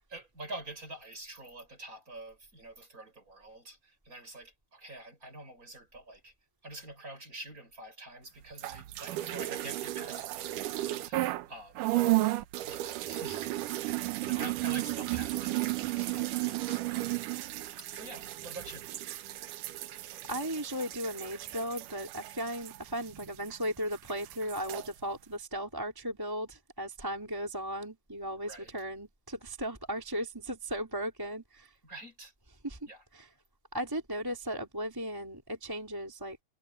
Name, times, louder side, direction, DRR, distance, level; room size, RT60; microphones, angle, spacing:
voice 1, 0.1-6.3 6.6-11.9 12.7-17.3 17.8-18.9 28.5-28.7 31.8-32.3 32.9-33.0, right 2 dB, 25° right, 5.5 m, -47 dB
sound 1, 8.5-11.5 11.8-23.7 23.9-24.9, right 17 dB, 80° right, 2.5 m, -34 dB
voice 2, 20.3-31.7 32.6-32.8 33.1-33.3 33.7-36.4, equal, 5° right, 3.1 m, -36 dB
omnidirectional pair, 3.7 m